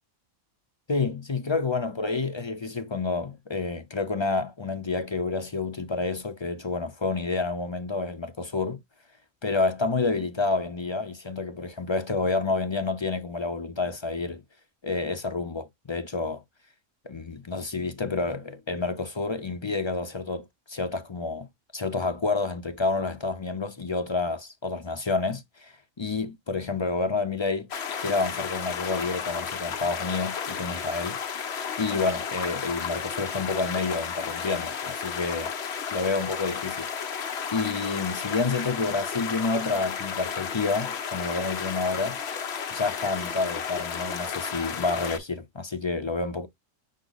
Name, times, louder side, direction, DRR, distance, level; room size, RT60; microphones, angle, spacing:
voice 1, 0.9-8.8 9.4-14.4 14.8-16.4 17.0-21.5 21.7-27.7 28.0-31.2 31.8-35.5 35.9-36.9 37.5-42.2 42.7-46.5, left 3 dB, 40° left, 0.4 m, -29 dB
sound 1, 27.7-45.2, left 7 dB, 55° left, 1.0 m, -33 dB
6.4 x 2.1 x 3.9 m
omnidirectional pair, 1.4 m